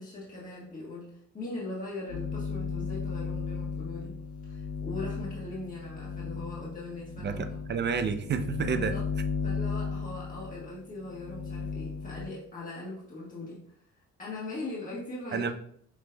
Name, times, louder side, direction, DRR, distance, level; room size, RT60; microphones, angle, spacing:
voice 1, 0.0-4.2 4.5-7.4 8.7-9.0 9.4-13.8 14.2-15.5, left 2 dB, 25° left, -6 dB, 1.4 m, -40 dB
sound 1, 2.1-12.2, left 6 dB, 55° left, 1.7 m, -35 dB
voice 2, 7.2-8.9 15.3-15.5, right 6 dB, 35° right, 9 dB, 0.5 m, -30 dB
6.0 x 3.1 x 2.2 m, 0.63 s
cardioid pair, 90°, 30 cm